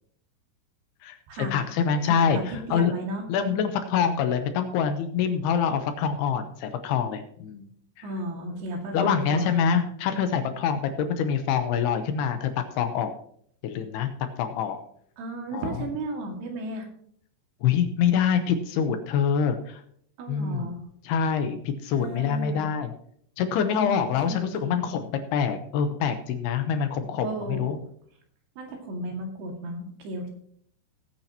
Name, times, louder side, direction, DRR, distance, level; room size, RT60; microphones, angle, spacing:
voice 1, 1.5-2.9 3.3-7.7 8.0-8.1 8.9-13.1 13.6-14.1 14.4-14.8 15.5-15.7 17.6-19.8 20.3-20.7 21.1-22.9 23.4-27.8, left 7 dB, 75° left, 8 dB, 2.6 m, -25 dB
voice 2, 2.0-3.3 8.0-9.6 15.2-16.9 20.2-20.8 22.0-22.7 23.7-24.0 24.2-24.7 27.2-27.7 28.6-30.3, right 1 dB, 65° right, 2 dB, 3.9 m, -34 dB
19.0 x 8.8 x 2.9 m, 0.63 s
omnidirectional pair, 5.3 m